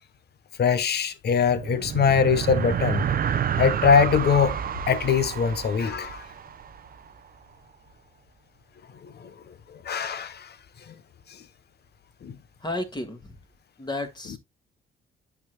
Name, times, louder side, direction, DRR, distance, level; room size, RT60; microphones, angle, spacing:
voice 1, 0.6-3.1 3.6-4.6 4.9-6.3 9.0-9.3 9.8-10.5 10.9-11.0 11.3-11.4 12.2-12.4, left 6 dB, 55° left, 1.3 m, -22 dB
sound 1, 1.4-7.1, right 8 dB, 45° right, 0.7 m, -29 dB
voice 2, 12.6-13.4 13.8-14.4, left 2 dB, 20° left, 2.2 m, -32 dB
9.7 x 5.9 x 2.4 m
cardioid pair, 90°, 20 cm